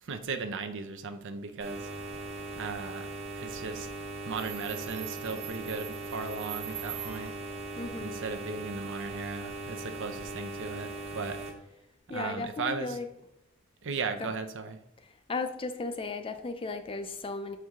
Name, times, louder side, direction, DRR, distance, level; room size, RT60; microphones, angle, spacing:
voice 1, 0.0-1.9 2.5-3.1 3.4-3.9 4.2-7.3 8.0-11.4 12.1-13.0 13.8-14.8, right 4 dB, 60° right, 8 dB, 0.6 m, -36 dB
sound 1, 1.6-11.5, right 2 dB, 30° right, 1.1 m, -39 dB
Subway metro underground, 4.4-7.5, right 11 dB, 80° right, 1.5 m, -43 dB
voice 2, 7.8-8.2 12.1-13.1 14.2-14.3 15.3-17.6, left 3 dB, 25° left, 8 dB, 0.5 m, -35 dB
6.4 x 4.6 x 3.6 m, 0.82 s
head